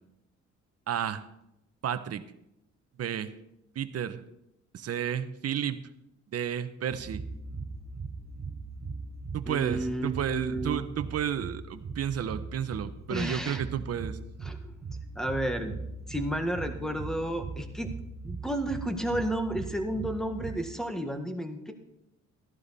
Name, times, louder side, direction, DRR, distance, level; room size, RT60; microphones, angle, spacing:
voice 1, 0.9-1.2 1.8-2.2 3.0-3.3 3.7-4.2 4.7-5.8 6.3-7.2 9.3-14.2, right 9 dB, 55° right, 11 dB, 1.0 m, -32 dB
sound 1, 6.9-20.6, right 4 dB, 35° right, 1.2 m, -40 dB
voice 2, 9.5-10.9 13.1-13.6 14.4-14.7 15.2-15.7 16.1-17.9 18.2-21.7, right 1 dB, ahead, 6 dB, 1.8 m, -32 dB
14.0 x 11.5 x 4.2 m, 0.84 s
cardioid pair, 90°, 30 cm